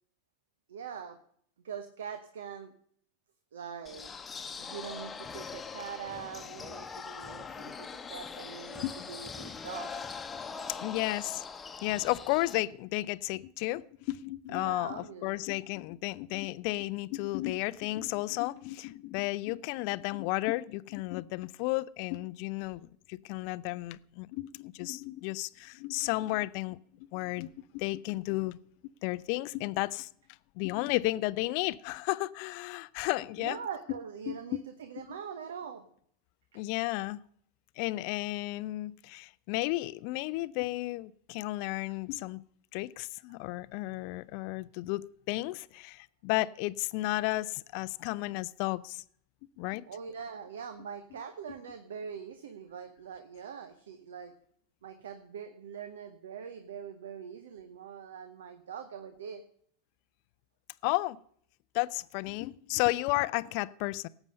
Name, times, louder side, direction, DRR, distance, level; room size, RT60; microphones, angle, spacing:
voice 1, 0.7-1.2 1.6-2.7 3.5-4.1 4.6-9.9 14.5-15.4 33.4-35.9 49.9-54.3 54.8-59.4, right 7 dB, 65° right, 1.0 m, -43 dB
sound 1, 3.9-12.6, left 5 dB, 20° left, 1.1 m, -42 dB
voice 2, 10.7-11.5 11.8-26.8 27.1-28.6 29.0-30.1 30.6-33.6 34.3-34.6 35.0-35.2 36.5-37.2 37.8-42.4 42.7-49.0 49.6-49.8 60.8-61.2 61.7-64.1, left 20 dB, 50° left, 0.5 m, -33 dB
18.0 x 8.1 x 5.3 m
figure-of-eight pair, 85°, 0 cm